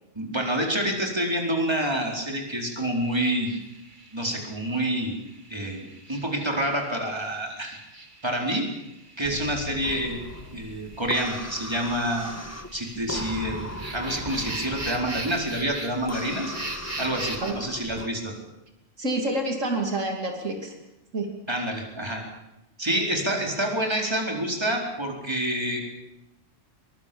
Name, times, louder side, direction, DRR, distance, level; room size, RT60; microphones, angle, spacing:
voice 1, 0.1-3.5 4.1-5.2 5.5-7.8 8.2-8.7 9.2-10.2 10.5-12.4 12.7-16.5 17.0-18.3 21.5-22.2 22.8-25.8, right 1 dB, 20° right, 0 dB, 4.5 m, -27 dB
sound 1, 2.5-17.5, right 2 dB, 35° right, 2.2 m, -41 dB
sound 2, 9.2-11.9, left 5 dB, 70° left, 1.9 m, -42 dB
sound 3, 9.8-18.1, left 1 dB, 10° left, 1.6 m, -38 dB
voice 2, 19.0-20.7 21.1-21.3, right 2 dB, 70° right, 2 dB, 3.2 m, -28 dB
23.0 x 22.5 x 7.1 m, 0.94 s
omnidirectional pair, 1.4 m